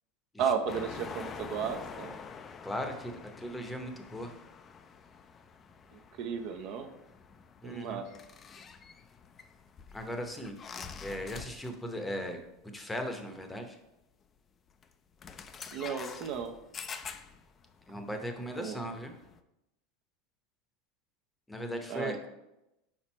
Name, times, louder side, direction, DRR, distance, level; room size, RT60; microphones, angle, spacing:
voice 1, 0.4-2.2 5.9-6.9 7.6-8.0 15.7-16.5 18.6-18.8 21.9-22.3, right 7 dB, 55° right, 7 dB, 0.6 m, -34 dB
sound 1, 0.7-12.0 12.2-12.5 13.6-13.7 14.7-14.9 15.2-19.4, left 6 dB, 30° left, 0.4 m, -47 dB
voice 2, 2.6-4.3 7.6-8.0 9.9-10.6 11.0-13.8 17.9-19.1 21.5-22.2, equal, 10° left, 5 dB, 0.8 m, -38 dB
4.9 x 4.5 x 4.3 m, 0.90 s
supercardioid pair, 115°, 0 cm